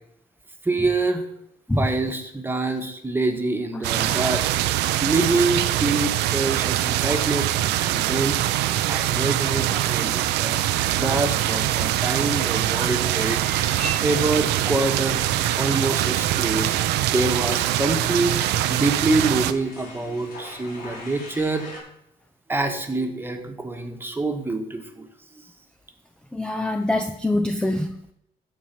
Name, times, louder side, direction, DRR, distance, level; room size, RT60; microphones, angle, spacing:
voice 1, 0.6-1.3 1.8-4.4 5.0-8.4 8.9-10.6 10.9-13.6 14.0-15.2 15.6-21.7 22.5-25.1, right 2 dB, 10° right, 5 dB, 1.5 m, -26 dB
sound 1, 3.8-19.5, right 13 dB, 85° right, 0.6 m, -23 dB
sound 2, 13.2-21.8, equal, 55° left, 4.7 m, -40 dB
voice 2, 26.3-28.1, left 1 dB, 5° left, 7 dB, 0.6 m, -24 dB
14.0 x 4.7 x 6.1 m, 0.76 s
cardioid pair, 110°, 17 cm